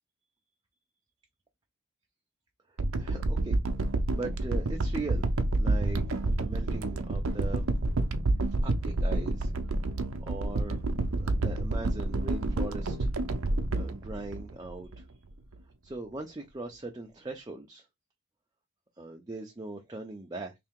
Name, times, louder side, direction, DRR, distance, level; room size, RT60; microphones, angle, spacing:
sound 1, 2.8-15.0 15.5-15.6, right 2 dB, 75° right, 0.6 m, -29 dB
voice 1, 2.9-3.6 4.1-7.7 8.6-9.5 10.2-10.8 11.2-13.1 13.7-15.0 15.8-17.9 19.0-20.5, right 2 dB, 20° right, 0.6 m, -40 dB
3.4 x 2.8 x 3.6 m
head